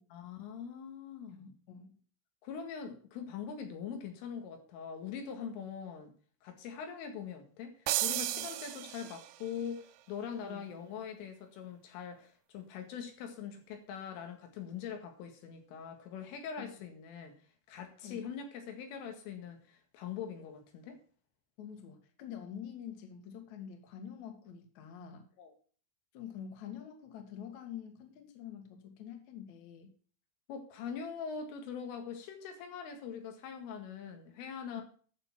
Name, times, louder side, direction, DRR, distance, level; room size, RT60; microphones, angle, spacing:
voice 1, 0.1-1.5 2.4-6.1 6.4-17.3 17.7-21.0 25.4-25.5 30.5-34.8, left 7 dB, 85° left, 4.4 m, -43 dB
voice 2, 1.3-1.9 8.3-9.1 10.3-10.7 16.6-16.7 18.0-18.3 21.6-25.3 26.1-29.9, left 8 dB, 50° left, 2.5 m, -47 dB
sound 1, 7.9-9.5, right 16 dB, 80° right, 3.0 m, -34 dB
11.0 x 6.7 x 5.9 m
omnidirectional pair, 5.6 m